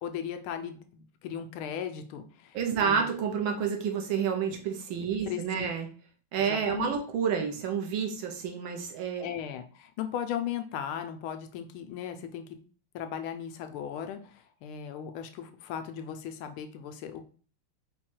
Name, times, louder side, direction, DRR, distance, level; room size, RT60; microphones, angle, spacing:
voice 1, 0.0-3.1 5.3-5.7 6.4-6.9 9.2-12.4 12.9-17.2, left 9 dB, 80° left, 7 dB, 1.4 m, -37 dB
voice 2, 2.5-5.9 6.3-9.3, right 7 dB, 75° right, 3 dB, 1.4 m, -29 dB
4.7 x 2.3 x 4.3 m, 0.40 s
omnidirectional pair, 2.4 m